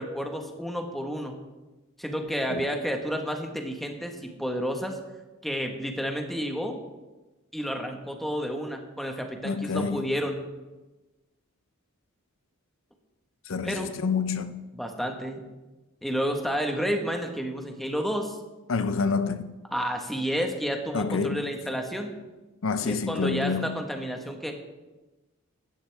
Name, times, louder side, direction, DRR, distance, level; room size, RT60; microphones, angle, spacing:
voice 1, 0.0-1.3 2.0-5.0 5.4-6.8 7.5-10.4 13.6-13.9 14.7-15.4 16.0-18.4 19.7-22.1 22.8-24.5, equal, ahead, 1.4 m, -30 dB
voice 2, 9.4-10.1 13.5-14.7 18.7-19.6 20.9-21.5 22.6-23.8, left 5 dB, 65° left, 0.6 m, -28 dB
16.5 x 12.5 x 3.5 m
head